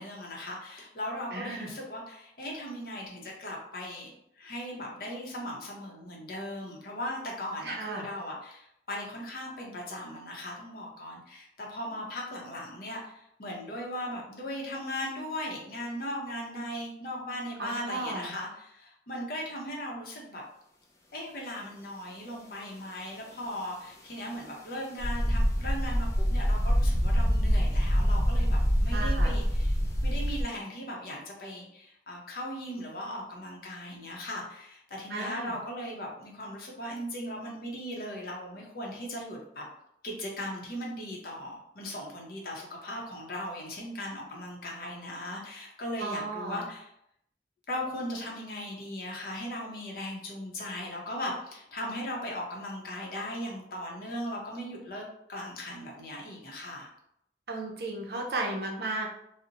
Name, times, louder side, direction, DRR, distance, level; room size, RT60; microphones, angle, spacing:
voice 1, 0.0-20.4 21.1-29.7 30.0-39.6 40.0-46.9 47.7-56.9, left 1 dB, 55° left, -2 dB, 0.6 m, -38 dB
voice 2, 1.3-1.7 7.6-8.1 17.6-18.3 28.9-29.3 35.1-35.6 46.0-46.6 57.5-59.1, right 2 dB, 65° right, 0 dB, 0.5 m, -34 dB
sound 1, 25.0-30.4, equal, 20° left, 0.3 m, -25 dB
2.8 x 2.0 x 2.5 m, 0.75 s
head